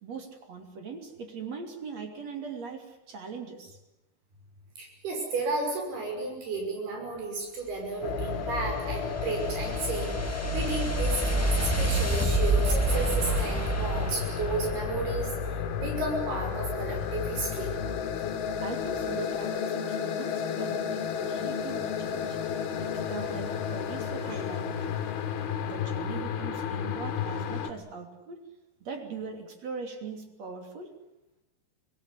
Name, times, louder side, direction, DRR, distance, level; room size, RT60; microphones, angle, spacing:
voice 1, 0.0-3.8 18.6-25.0 25.6-28.4 28.8-31.0, right 4 dB, 45° right, 5 dB, 3.9 m, -41 dB
voice 2, 4.8-17.7 24.2-24.4, right 2 dB, 75° right, 1 dB, 7.8 m, -33 dB
sound 1, 8.0-27.7, left 7 dB, 75° left, 3.5 m, -32 dB
sound 2, 8.2-15.4, right 2 dB, 15° left, 0.6 m, -29 dB
25.5 x 19.5 x 9.9 m, 0.88 s
omnidirectional pair, 4.6 m